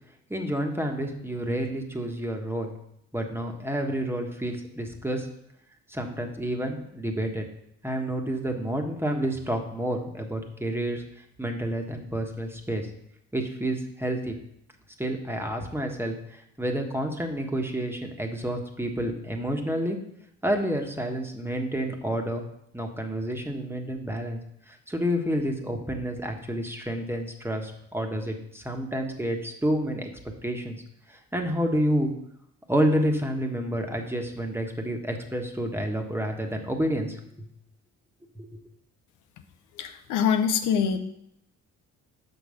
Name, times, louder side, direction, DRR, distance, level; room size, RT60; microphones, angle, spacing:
voice 1, 0.3-2.7 3.1-5.3 5.9-7.4 7.8-11.0 11.4-12.9 13.3-14.4 15.0-20.0 20.4-22.4 22.7-24.4 24.7-30.1 30.4-30.8 31.1-32.1 32.7-37.2 38.4-38.5, equal, 10° right, 3 dB, 1.3 m, -29 dB
voice 2, 39.8-41.0, left 7 dB, 90° left, 7 dB, 0.8 m, -24 dB
6.2 x 5.4 x 6.5 m, 0.75 s
cardioid pair, 90°, 30 cm